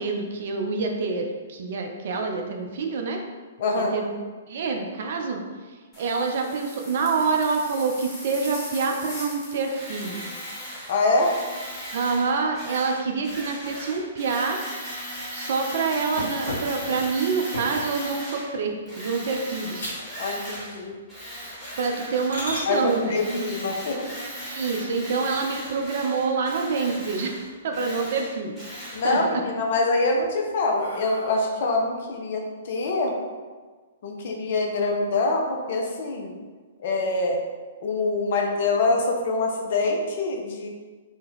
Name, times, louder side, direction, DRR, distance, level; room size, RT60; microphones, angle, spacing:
voice 1, 0.0-3.2 3.7-4.1 4.5-5.4 6.0-10.2 11.9-14.6 15.3-19.9 21.8-23.2 24.4-27.4 27.6-28.6 29.0-29.2, right 4 dB, 55° right, 2 dB, 0.4 m, -26 dB
voice 2, 3.6-4.0 10.9-11.3 20.2-20.9 22.6-24.0 28.9-33.1 34.0-36.3 36.8-37.4 37.8-40.7, left 3 dB, 55° left, 1 dB, 0.5 m, -25 dB
sound 1, 5.9-10.9, left 1 dB, 20° left, 1.2 m, -41 dB
Tools, 9.7-18.5 18.9-20.8 21.1-29.2, equal, 5° left, 1.1 m, -38 dB
sound 2, 16.2-18.0 18.5-18.8 19.3-19.4 19.8-20.1 20.4-21.0 21.3-21.5 22.0-22.7 24.7-25.4 25.8-25.9 26.3-26.4 26.7-27.5 27.9-28.5 28.9-29.5 30.0-31.7, left 1 dB, 75° left, 1.1 m, -37 dB
2.7 x 2.2 x 3.4 m, 1.4 s
figure-of-eight pair, 115°, 0 cm